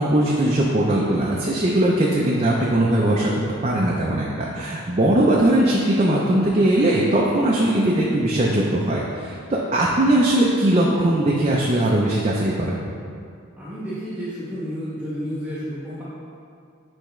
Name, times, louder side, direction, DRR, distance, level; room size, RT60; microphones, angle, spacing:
voice 1, 0.0-3.3 3.6-12.8, right 1 dB, 30° right, -4 dB, 0.5 m, -20 dB
voice 2, 13.5-16.0, equal, 5° right, -10 dB, 1.0 m, -31 dB
9.9 x 3.5 x 3.1 m, 2.3 s
head